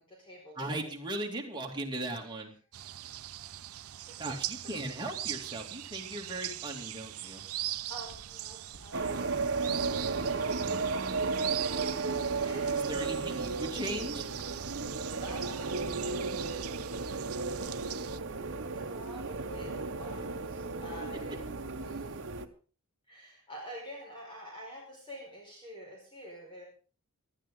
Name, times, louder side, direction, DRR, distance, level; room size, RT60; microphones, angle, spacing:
voice 1, 0.0-0.9 4.1-4.2 7.1-7.4 7.9-9.3 12.4-13.1 15.2-16.9 18.7-21.4 21.8-22.2 23.1-26.6, equal, 25° left, -2 dB, 4.9 m, -48 dB
voice 2, 0.6-2.5 4.2-7.4 12.7-14.3, right 1 dB, 20° right, 0 dB, 2.6 m, -38 dB
sound 1, 2.7-18.2, right 14 dB, 80° right, 0.6 m, -41 dB
sound 2, 7.7-18.6, equal, 90° left, 4.3 m, -57 dB
sound 3, 8.9-22.5, right 4 dB, 60° right, 1.1 m, -34 dB
19.0 x 12.5 x 3.8 m, 0.38 s
head